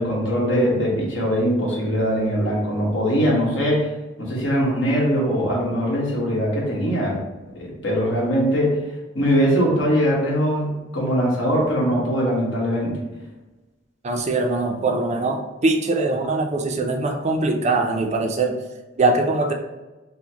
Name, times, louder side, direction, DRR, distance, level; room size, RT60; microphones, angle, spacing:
voice 1, 0.0-3.9 4.2-7.2 7.5-8.8 9.1-13.0, equal, 70° left, -4 dB, 1.3 m, -21 dB
voice 2, 14.0-18.6 19.0-19.5, right 2 dB, 35° right, 3 dB, 0.4 m, -22 dB
5.4 x 2.1 x 2.8 m, 1.1 s
head